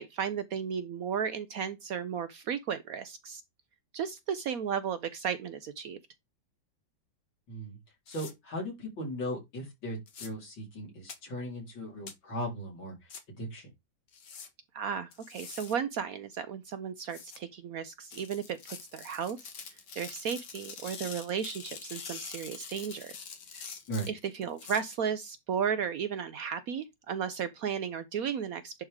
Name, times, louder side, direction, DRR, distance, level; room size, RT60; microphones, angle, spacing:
voice 1, 0.0-3.4 3.9-6.0 14.7-19.5 20.0-23.2 23.5-23.7 24.1-28.8, right 7 dB, 65° right, 0.9 m, -34 dB
voice 2, 7.5-7.8 8.1-13.7 23.9-24.1, equal, 90° left, 4.7 m, -38 dB
sound 1, 8.1-8.3 10.1-10.3 11.1-11.2 12.1-12.2 13.1-13.2 14.1-14.5 15.1-15.7 17.1-17.4 18.1-24.8, left 6 dB, 65° left, 2.0 m, -45 dB
10.5 x 4.7 x 3.6 m
omnidirectional pair, 2.0 m